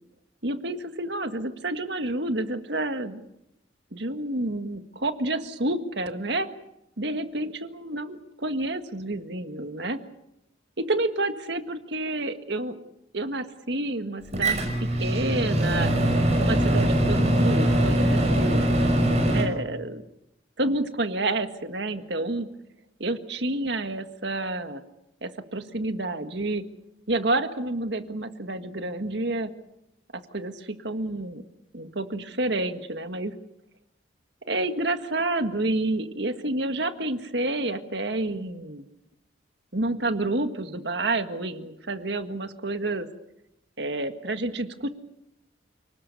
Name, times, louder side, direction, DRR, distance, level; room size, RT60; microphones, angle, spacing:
voice 1, 0.4-3.2 3.9-6.5 7.0-10.0 10.8-12.8 13.1-15.9 16.4-18.7 19.2-20.0 20.6-22.5 23.0-24.8 25.2-26.6 27.1-29.5 30.1-31.4 31.7-33.3 34.5-38.9 39.7-43.1 43.8-44.9, right 2 dB, 65° right, 8 dB, 1.8 m, -29 dB
Microwave oven, 14.3-19.4, right 1 dB, 35° right, 5.8 m, -22 dB
29.5 x 19.5 x 6.9 m, 0.85 s
head